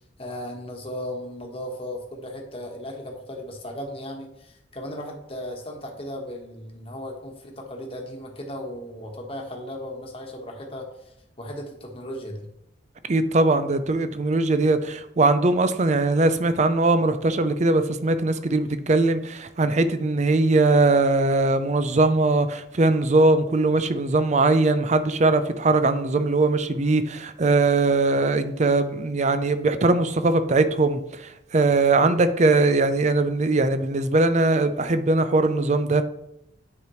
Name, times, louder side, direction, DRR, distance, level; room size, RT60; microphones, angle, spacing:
voice 1, 0.2-10.9 11.4-12.5 32.0-32.2, left 1 dB, 30° left, 1 dB, 1.3 m, -36 dB
voice 2, 13.1-36.0, right 2 dB, 35° right, 11 dB, 0.5 m, -21 dB
9.6 x 5.0 x 3.1 m, 0.82 s
head